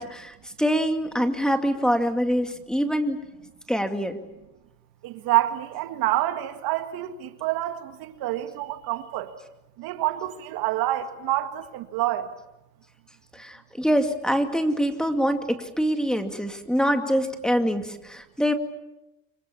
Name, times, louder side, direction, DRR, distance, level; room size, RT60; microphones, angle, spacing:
voice 1, 0.0-3.2 3.7-4.2 13.3-18.5, equal, ahead, 2.3 m, -25 dB
voice 2, 5.0-9.4 9.8-12.3, right 15 dB, 70° right, 1.9 m, -27 dB
25.5 x 24.0 x 7.2 m
supercardioid pair, 95°, 38 cm